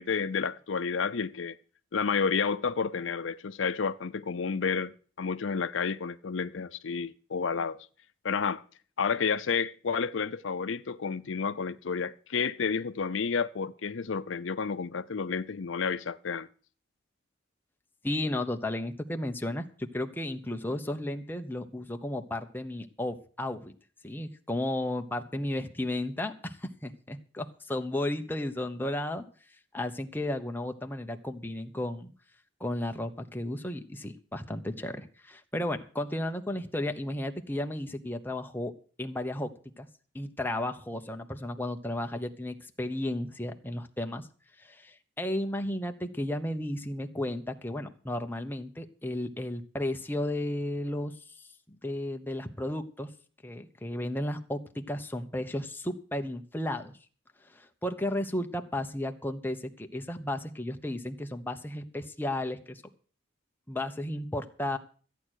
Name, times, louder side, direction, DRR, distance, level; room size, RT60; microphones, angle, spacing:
voice 1, 0.0-1.5 1.9-4.9 5.2-7.8 8.2-8.6 9.0-16.5, left 5 dB, 80° left, 0.6 m, -30 dB
voice 2, 18.0-23.7 24.0-29.2 29.7-32.1 32.6-38.7 39.0-39.5 39.8-39.9 40.1-44.3 44.6-51.1 51.7-53.1 53.4-57.0 57.5-62.8 63.7-64.8, left 1 dB, 10° left, 1.0 m, -34 dB
14.0 x 9.0 x 6.4 m
head